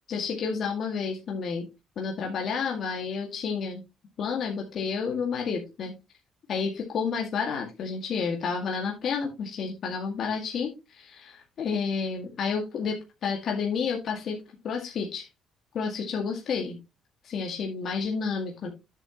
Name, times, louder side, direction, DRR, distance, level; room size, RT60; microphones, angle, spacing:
voice 1, 0.1-1.7 2.0-3.8 4.2-5.9 6.5-14.4 14.6-15.3 15.7-16.8 17.2-18.7, left 5 dB, 60° left, 0 dB, 2.1 m, -30 dB
9.9 x 7.2 x 3.0 m, 0.25 s
supercardioid pair, 60°, 0 cm